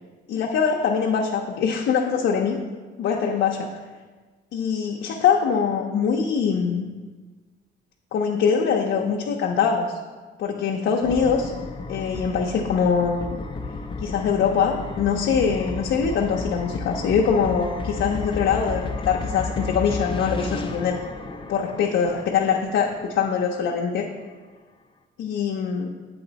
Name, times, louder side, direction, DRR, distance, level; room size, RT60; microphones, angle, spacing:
voice 1, 0.3-2.6 3.0-3.7 4.5-6.9 8.1-10.0 10.4-11.5 11.9-13.4 14.0-21.0 21.5-24.1 25.2-25.9, left 6 dB, 70° left, 0 dB, 0.6 m, -23 dB
sound 1, 11.0-23.8, left 3 dB, 25° left, 0.5 m, -33 dB
7.8 x 4.1 x 4.0 m, 1.4 s
cardioid pair, 90°, 20 cm